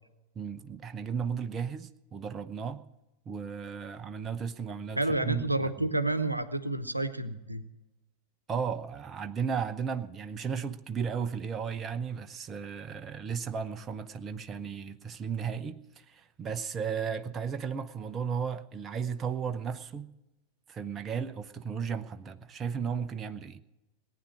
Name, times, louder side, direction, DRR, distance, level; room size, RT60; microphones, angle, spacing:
voice 1, 0.4-2.8 3.3-5.5 8.5-20.1 20.7-23.6, right 6 dB, 25° right, 10 dB, 0.8 m, -35 dB
voice 2, 5.0-7.6, right 2 dB, 85° right, 12 dB, 0.9 m, -29 dB
18.5 x 9.8 x 6.3 m, 1.0 s
figure-of-eight pair, 90°, 0 cm